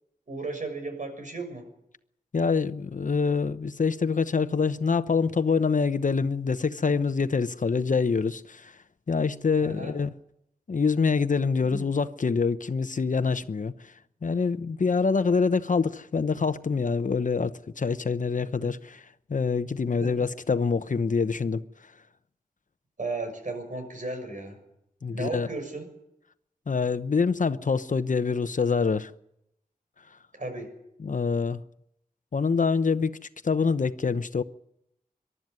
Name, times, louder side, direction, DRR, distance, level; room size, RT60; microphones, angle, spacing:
voice 1, 0.3-1.6 9.6-9.9 11.6-11.8 18.6-18.7 23.0-24.6 25.0-25.9 30.4-30.7, right 2 dB, 60° right, 6.6 m, -35 dB
voice 2, 2.3-8.8 9.1-10.1 10.7-13.9 14.2-19.0 19.3-21.6 25.0-25.5 26.7-29.1 31.0-31.6 32.3-33.2 33.4-34.4, left 5 dB, 60° left, 0.9 m, -25 dB
23.0 x 12.5 x 9.5 m
wide cardioid pair, 65°, 15 cm